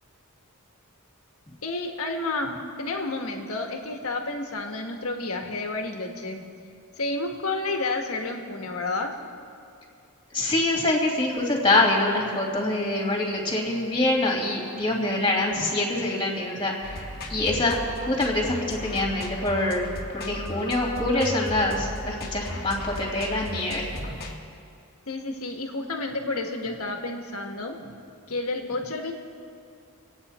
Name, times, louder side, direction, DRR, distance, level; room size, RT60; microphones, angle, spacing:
voice 1, 1.6-6.4 7.0-9.1 25.1-27.8 28.3-29.1, left 2 dB, 75° left, 3 dB, 1.5 m, -30 dB
voice 2, 10.3-24.2, left 2 dB, 20° left, -1 dB, 2.6 m, -25 dB
sound 1, 16.8-24.4, left 1 dB, 45° left, 1.5 m, -36 dB
27.0 x 9.0 x 4.3 m, 2.4 s
head